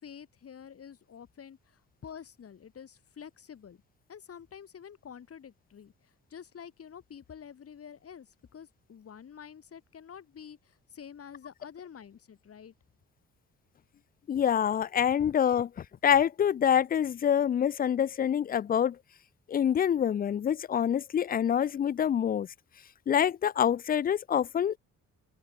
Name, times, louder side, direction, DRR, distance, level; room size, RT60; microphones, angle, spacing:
voice 1, 0.0-3.8 4.1-12.7, left 8 dB, 50° left, 4.2 m, -48 dB
voice 2, 14.3-15.7 16.0-19.0 19.5-22.5 23.1-24.7, left 9 dB, 30° left, 0.4 m, -26 dB
open air
cardioid pair, 90°, 30 cm